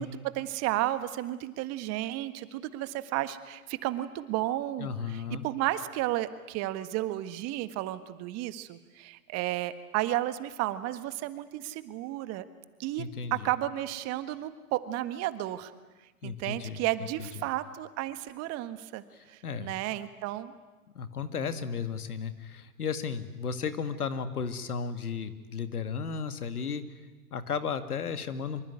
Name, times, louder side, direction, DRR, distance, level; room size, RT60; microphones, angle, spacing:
voice 1, 0.0-12.5 12.8-15.7 16.2-20.5, right 14 dB, 35° right, 12 dB, 1.6 m, -33 dB
voice 2, 4.8-5.5 13.0-13.5 16.2-16.8 17.2-17.3 19.1-19.7 21.0-26.8 27.3-28.6, left 6 dB, 80° left, 10 dB, 2.2 m, -34 dB
25.0 x 24.0 x 9.5 m, 1.2 s
hypercardioid pair, 110°, 44 cm